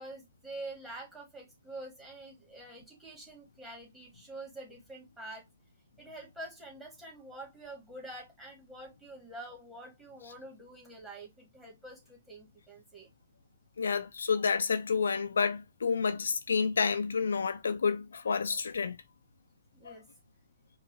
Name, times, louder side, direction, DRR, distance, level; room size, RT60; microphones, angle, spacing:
voice 1, 0.0-5.5 6.0-13.1 19.7-20.1, right 2 dB, 10° right, 1.6 m, -46 dB
voice 2, 13.8-19.0 19.8-19.9, left 5 dB, 70° left, 0.4 m, -29 dB
4.7 x 2.2 x 2.6 m
figure-of-eight pair, 120°, 0 cm